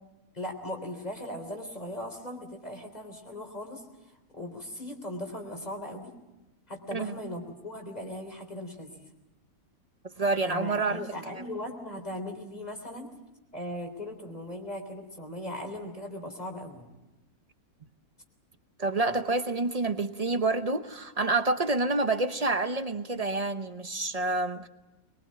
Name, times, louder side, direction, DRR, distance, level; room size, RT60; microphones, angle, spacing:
voice 1, 0.3-3.8 4.3-6.1 6.7-9.1 10.4-13.1 13.5-16.9, left 1 dB, 25° left, 4 dB, 3.7 m, -38 dB
voice 2, 10.2-11.0 11.3-11.4 18.8-24.7, right 3 dB, 30° right, 9 dB, 0.8 m, -28 dB
23.0 x 21.5 x 8.7 m, 1.0 s
omnidirectional pair, 1.6 m